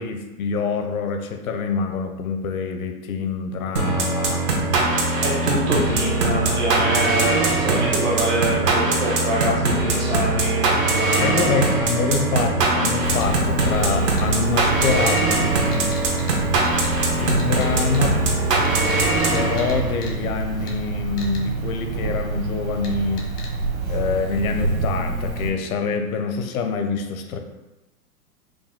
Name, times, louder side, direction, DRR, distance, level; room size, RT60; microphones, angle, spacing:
voice 1, 0.0-4.4 11.2-16.0 17.0-18.3 19.3-23.2 23.9-27.4, left 5 dB, 65° left, 5 dB, 0.7 m, -26 dB
sound 1, 3.8-20.1, right 2 dB, 90° right, 1.2 m, -21 dB
voice 2, 5.2-11.5, right 2 dB, 10° right, -5 dB, 0.4 m, -25 dB
Cricket, 13.0-25.5, right 3 dB, 65° right, 1.1 m, -28 dB
sound 2, 13.2-13.3 14.2-14.3 14.6-15.2 15.7-16.3 16.6-16.9 17.3-17.7 17.9-18.0 18.6-19.7 20.0-20.1 20.7-20.8 21.2-21.4 22.8-22.9 23.2-23.5, left 4 dB, 80° left, 1.3 m, -38 dB
5.0 x 2.0 x 3.6 m, 1.0 s
hypercardioid pair, 135°, 46 cm